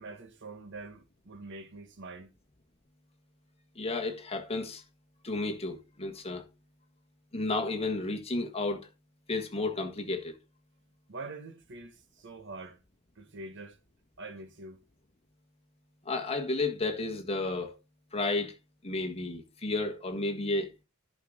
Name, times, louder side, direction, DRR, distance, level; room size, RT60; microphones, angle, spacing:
voice 1, 0.0-2.3 11.1-12.8 13.1-13.8 14.2-14.8, right 3 dB, 55° right, 1.5 m, -45 dB
voice 2, 3.7-4.8 5.2-6.4 7.3-8.9 9.3-10.3 16.0-17.7 18.1-18.5 18.8-20.7, left 2 dB, 30° left, 1.6 m, -32 dB
11.0 x 6.5 x 3.8 m
head